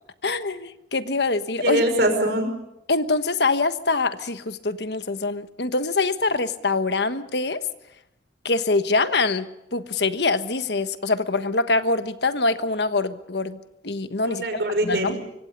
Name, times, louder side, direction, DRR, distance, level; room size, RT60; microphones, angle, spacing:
voice 1, 0.2-1.8 2.9-7.6 8.4-14.4 14.8-15.2, left 3 dB, 65° left, 11 dB, 1.3 m, -24 dB
voice 2, 1.6-2.5 14.3-15.2, right 1 dB, 60° right, 6 dB, 5.5 m, -23 dB
24.5 x 24.5 x 5.3 m, 0.83 s
head